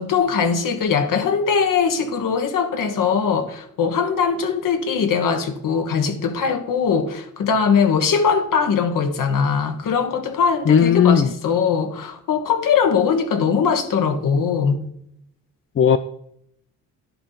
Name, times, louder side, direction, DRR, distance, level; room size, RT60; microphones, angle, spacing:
voice 1, 0.0-14.8, left 6 dB, 60° left, 1.3 m, -21 dB
voice 2, 10.7-11.3 15.8-16.0, left 8 dB, 35° left, 0.5 m, -15 dB
11.0 x 3.7 x 5.7 m
hypercardioid pair, 50°, 37 cm